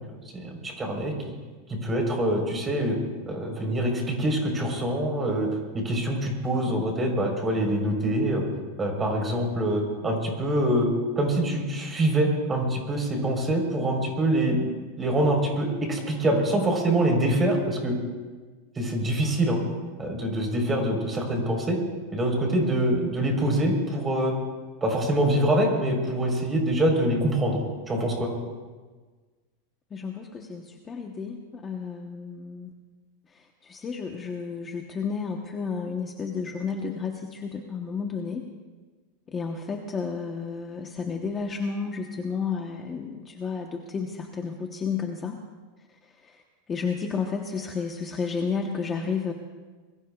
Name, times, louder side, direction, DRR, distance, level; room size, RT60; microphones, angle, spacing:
voice 1, 0.3-1.1 1.7-3.0 3.3-5.5 5.7-8.4 8.8-10.9 11.2-14.7 15.0-17.9 18.8-19.6 20.0-21.8 22.1-24.3 24.8-27.6 27.9-28.3, right 1 dB, 15° right, 1 dB, 4.1 m, -25 dB
voice 2, 29.9-32.7 33.3-38.4 39.3-45.4 45.9-49.3, left 5 dB, 20° left, 2 dB, 1.1 m, -32 dB
26.5 x 22.0 x 2.4 m, 1.3 s
supercardioid pair, 155°, 0 cm